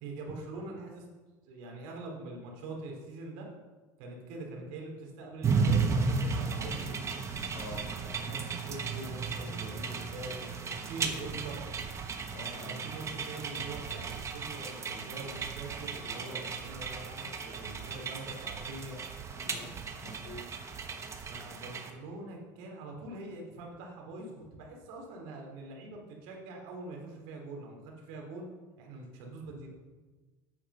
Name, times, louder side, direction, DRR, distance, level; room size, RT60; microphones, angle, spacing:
voice 1, 0.0-1.0 1.5-3.5 4.0-7.1 8.0-11.6 12.3-19.0 21.3-28.5 28.8-29.7, right 2 dB, 75° right, 0 dB, 3.2 m, -43 dB
sound 1, 5.4-21.9, right 5 dB, 30° right, 1.3 m, -35 dB
sound 2, 6.5-21.4, right 8 dB, 50° right, 0.7 m, -50 dB
voice 2, 7.5-7.9 12.3-12.8 16.2-16.5 19.3-19.7 20.0-20.5, equal, 80° left, 2 dB, 3.3 m, -46 dB
8.9 x 8.5 x 5.6 m, 1.3 s
supercardioid pair, 105°, 10 cm